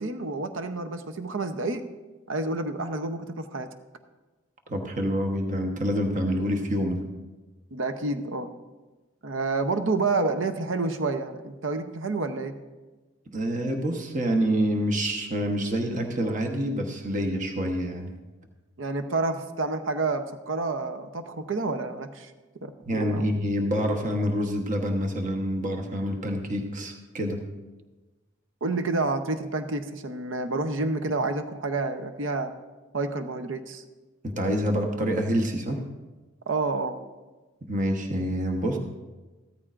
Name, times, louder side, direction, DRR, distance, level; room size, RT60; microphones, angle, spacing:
voice 1, 0.0-1.8 2.3-3.7 7.7-8.5 9.2-12.6 18.8-22.3 22.6-23.3 28.6-32.5 32.9-33.8 36.5-37.0, right 3 dB, 80° right, 8 dB, 0.7 m, -29 dB
voice 2, 4.7-7.0 13.3-18.1 22.9-27.4 34.2-35.8 37.6-38.8, equal, 40° right, 3 dB, 1.1 m, -27 dB
15.0 x 13.5 x 2.5 m, 1.2 s
head